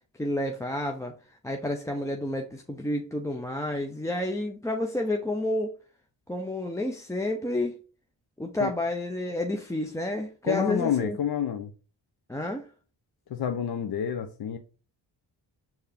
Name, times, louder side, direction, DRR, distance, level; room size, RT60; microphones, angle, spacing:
voice 1, 0.2-1.1 1.4-5.7 6.3-7.8 8.4-11.2 12.3-12.7, left 1 dB, 5° left, 0.5 m, -30 dB
voice 2, 10.4-11.7 13.3-14.6, left 8 dB, 55° left, 0.6 m, -28 dB
4.6 x 2.8 x 3.4 m
supercardioid pair, 55°, 46 cm